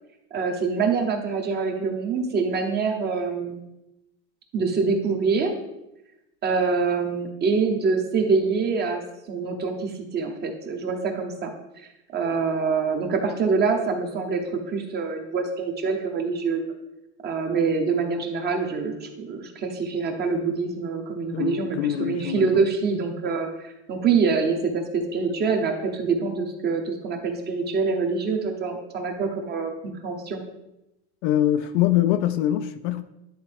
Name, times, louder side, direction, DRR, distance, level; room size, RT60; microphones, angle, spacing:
voice 1, 0.3-3.6 4.5-5.5 6.4-11.9 12.1-16.6 17.2-29.7 30.0-30.4, right 4 dB, 30° right, 1.0 m, -25 dB
voice 2, 21.3-22.4 31.2-33.0, left 12 dB, 55° left, 0.5 m, -23 dB
10.5 x 3.9 x 3.5 m
supercardioid pair, 130°, 34 cm